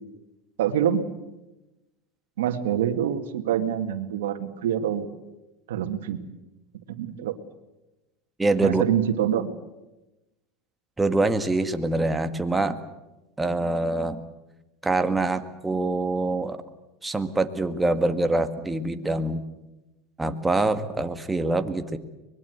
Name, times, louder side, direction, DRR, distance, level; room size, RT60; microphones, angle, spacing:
voice 1, 0.6-1.0 2.4-5.1 5.7-6.2 6.9-7.4 8.6-9.5, right 10 dB, 85° right, 8 dB, 2.2 m, -25 dB
voice 2, 8.4-8.8 11.0-12.8 13.4-14.2 14.8-16.6 17.0-19.4 20.2-22.0, right 2 dB, 10° right, 8 dB, 1.7 m, -25 dB
24.5 x 21.0 x 8.1 m, 1.0 s
supercardioid pair, 125°, 0 cm